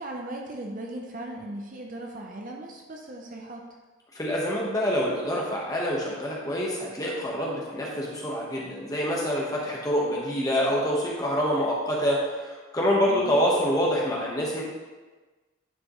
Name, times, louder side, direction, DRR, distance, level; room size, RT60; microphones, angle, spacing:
voice 1, 0.0-3.6 13.0-13.4, right 1 dB, 40° right, 1 dB, 0.7 m, -38 dB
voice 2, 4.1-14.6, equal, 15° left, -4 dB, 1.2 m, -26 dB
9.8 x 5.1 x 3.1 m, 1.3 s
head